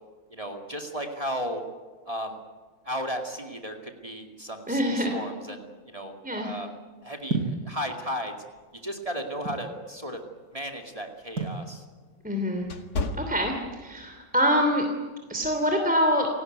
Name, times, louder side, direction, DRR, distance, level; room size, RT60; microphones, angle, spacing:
voice 1, 0.3-1.6 2.1-2.4 2.8-6.7 7.0-8.3 8.8-10.2 10.5-11.8, equal, 20° right, 3 dB, 2.5 m, -35 dB
voice 2, 4.7-5.1 6.2-6.5 12.2-12.7 13.2-14.9 15.3-16.3, equal, 5° right, 3 dB, 2.8 m, -25 dB
sound 1, 7.3-7.6 8.5-9.7 11.4-11.6, right 3 dB, 80° right, 6.1 m, -30 dB
sound 2, 10.4-14.1 14.6-14.8 15.4-15.7, left 3 dB, 85° left, 2.4 m, -35 dB
28.5 x 18.5 x 9.4 m, 1.5 s
omnidirectional pair, 1.6 m